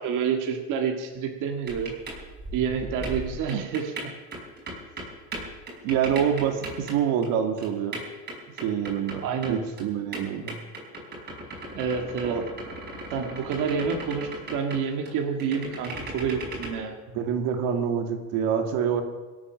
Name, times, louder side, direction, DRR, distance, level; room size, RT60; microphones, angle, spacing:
voice 1, 0.0-1.9 2.5-4.1 9.2-9.6 11.7-12.4 13.1-17.0, right 6 dB, 50° right, 2 dB, 1.9 m, -28 dB
sound 1, 1.7-6.9 7.2-7.3 7.6-9.8 10.1-15.1 15.4-16.7, right 2 dB, 25° right, 5.0 m, -37 dB
voice 2, 5.8-8.0 8.6-10.6 12.2-12.4 17.1-19.0, right 8 dB, 75° right, 4 dB, 2.1 m, -26 dB
24.5 x 8.7 x 6.2 m, 1.2 s
cardioid pair, 155°, 39 cm